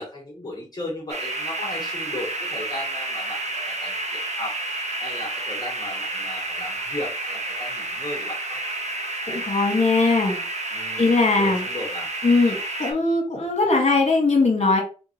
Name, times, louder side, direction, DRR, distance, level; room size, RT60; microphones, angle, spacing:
voice 1, 0.0-4.6 5.0-8.6 10.7-12.1, left 1 dB, 30° left, -4 dB, 1.5 m, -36 dB
sound 1, 1.1-12.9, right 2 dB, 55° right, 1.0 m, -30 dB
voice 2, 9.3-10.4 11.0-11.6 12.2-14.8, left 3 dB, 50° left, 1 dB, 1.7 m, -20 dB
3.6 x 3.6 x 2.9 m, 0.34 s
cardioid pair, 55°, 14 cm